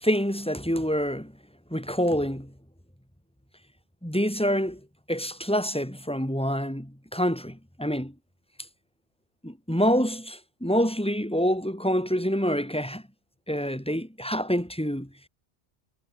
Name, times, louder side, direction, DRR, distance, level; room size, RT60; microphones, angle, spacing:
voice 1, 0.0-1.3 1.7-2.5 4.0-4.8 5.1-8.1 9.4-13.0 13.5-15.1, equal, 5° left, 3.5 m, -26 dB
omnidirectional pair, 1.1 m